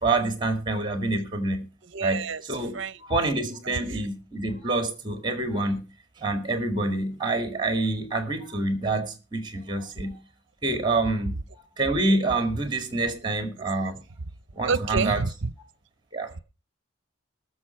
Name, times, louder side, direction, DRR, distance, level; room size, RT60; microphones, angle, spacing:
voice 1, 0.0-1.7 2.0-5.8 6.2-10.2 10.6-11.4 11.8-14.0 14.5-15.2 16.1-16.3, right 2 dB, 20° right, 2.1 m, -27 dB
voice 2, 1.9-2.4 2.7-2.9 14.7-15.3, right 4 dB, 60° right, 0.7 m, -27 dB
20.5 x 7.0 x 4.5 m
head